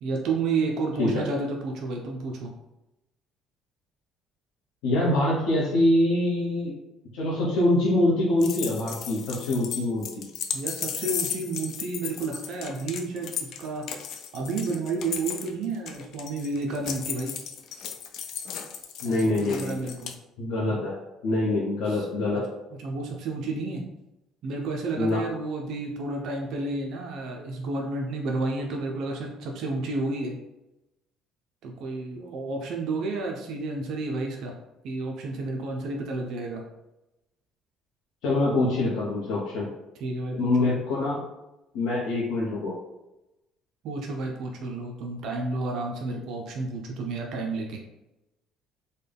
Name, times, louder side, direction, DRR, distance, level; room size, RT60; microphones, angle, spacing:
voice 1, 0.0-2.5 10.5-13.9 14.3-17.3 19.0-20.1 20.7-20.8 21.8-22.1 22.3-22.4 22.8-23.8 24.4-30.3 31.6-34.5 34.8-36.6 40.0-40.7 43.8-47.8, right 3 dB, 60° right, 1 dB, 0.5 m, -31 dB
voice 2, 4.8-6.7 7.1-10.2 19.0-19.9 20.4-20.9 21.2-22.4 25.0-25.2 38.2-39.7 40.4-41.2 41.7-42.7, left 1 dB, 90° left, -6 dB, 0.9 m, -24 dB
sound 1, 8.4-20.1, left 8 dB, 55° left, 0.4 m, -35 dB
3.9 x 2.2 x 3.4 m, 0.95 s
cardioid pair, 160°, 0 cm